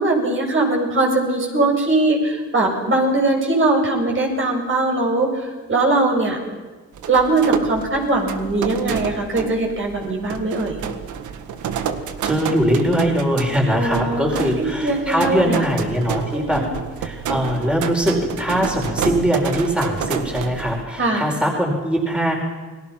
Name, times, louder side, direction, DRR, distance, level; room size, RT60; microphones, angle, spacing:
voice 1, 0.0-6.4 7.1-10.8 13.7-15.6 16.3-16.7 21.0-21.3, right 2 dB, 40° right, 0 dB, 7.1 m, -20 dB
sound 1, 7.0-20.8, right 8 dB, 75° right, 1.8 m, -29 dB
voice 2, 12.2-16.6 17.0-22.3, equal, 5° right, 0 dB, 4.9 m, -21 dB
29.0 x 20.0 x 6.0 m, 1.3 s
cardioid pair, 90°, 30 cm